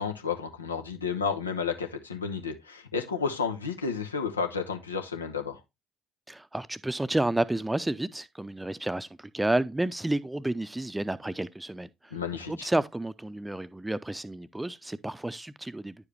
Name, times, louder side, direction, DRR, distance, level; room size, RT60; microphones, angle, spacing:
voice 1, 0.0-5.6 12.1-12.7, left 5 dB, 90° left, 0.9 m, -32 dB
voice 2, 6.3-12.1 12.5-16.0, right 1 dB, 10° right, 0.6 m, -30 dB
10.5 x 4.8 x 3.3 m
figure-of-eight pair, 55°, 0 cm